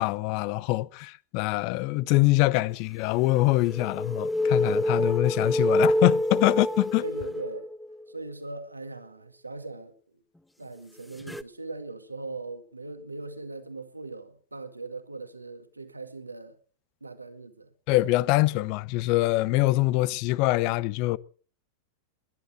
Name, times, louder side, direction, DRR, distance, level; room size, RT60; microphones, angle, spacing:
voice 1, 0.0-7.0 17.9-21.2, left 19 dB, 45° left, 0.7 m, -24 dB
sound 1, 3.3-8.0 11.3-11.4, left 1 dB, 5° left, 0.8 m, -26 dB
voice 2, 7.0-7.7 8.1-9.9 10.6-16.6 17.0-17.7, right 3 dB, 80° right, 1.9 m, -40 dB
21.5 x 10.5 x 6.2 m
figure-of-eight pair, 90°, 0 cm